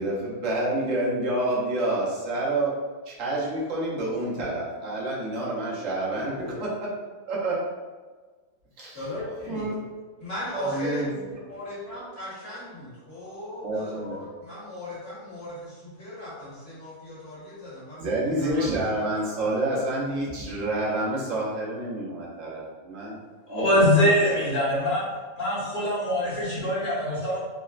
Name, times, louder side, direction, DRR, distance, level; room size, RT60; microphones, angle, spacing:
voice 1, 0.0-2.7 3.1-6.9 7.3-7.6 8.8-9.0 9.5-9.8 10.5-11.1 13.6-14.2 18.0-23.2 23.5-24.5, right 1 dB, 70° right, -5 dB, 1.1 m, -28 dB
voice 2, 6.2-6.5 8.9-9.7 10.2-19.5, left 1 dB, 60° left, -10 dB, 1.8 m, -38 dB
voice 3, 23.5-25.0 25.4-27.4, left 1 dB, 40° left, -9 dB, 1.1 m, -23 dB
3.8 x 2.0 x 2.4 m, 1.4 s
omnidirectional pair, 1.4 m